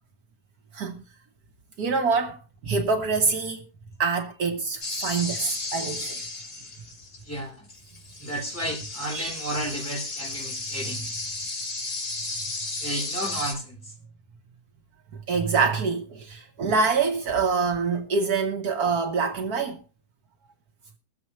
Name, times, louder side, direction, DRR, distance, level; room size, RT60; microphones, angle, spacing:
voice 1, 1.8-2.4 2.6-3.7 4.0-6.2 9.1-9.3 15.1-19.8, right 4 dB, 70° right, 1.5 m, -25 dB
sound 1, 4.8-7.4 7.7-13.5, left 3 dB, 70° left, 3.1 m, -34 dB
voice 2, 7.2-7.7 8.2-11.0 12.8-13.8, right 1 dB, 10° left, 4.7 m, -32 dB
22.5 x 7.5 x 3.0 m
omnidirectional pair, 1.7 m